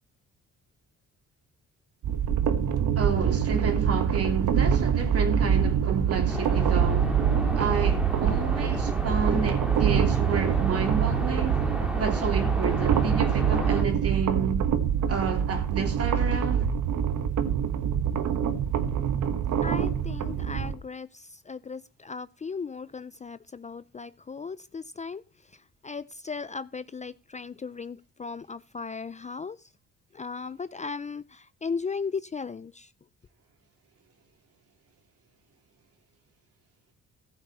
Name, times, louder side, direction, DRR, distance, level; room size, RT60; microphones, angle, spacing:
sound 1, 2.0-20.8, right 8 dB, 75° right, 1.5 m, -25 dB
voice 1, 2.9-7.1 7.5-11.6 12.0-14.7 15.1-16.7, right 5 dB, 50° right, 3.1 m, -30 dB
sound 2, 6.3-13.8, equal, 5° right, 2.1 m, -34 dB
voice 2, 19.6-25.2 25.8-29.6 30.1-32.9, left 5 dB, 25° left, 0.5 m, -36 dB
15.0 x 8.0 x 4.2 m
cardioid pair, 90°, 30 cm